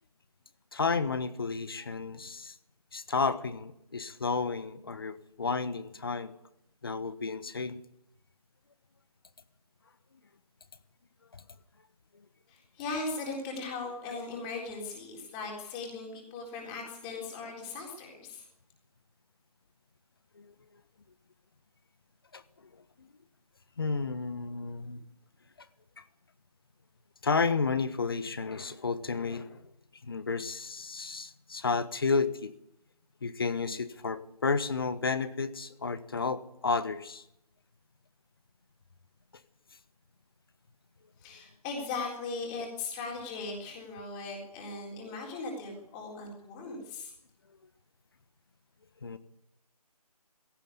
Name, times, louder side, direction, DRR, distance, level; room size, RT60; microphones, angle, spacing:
voice 1, 0.7-2.6 2.9-6.4 6.8-7.8 11.3-11.4 20.4-20.5 22.3-22.4 23.0-23.1 23.8-25.0 26.0-26.1 27.2-29.7 30.0-32.5 33.2-37.2 49.0-49.2, left 4 dB, 35° left, 1.3 m, -32 dB
voice 2, 12.5-18.5 41.2-47.1, left 3 dB, 10° left, 3.9 m, -38 dB
18.5 x 17.0 x 9.6 m
figure-of-eight pair, 165°, 20 cm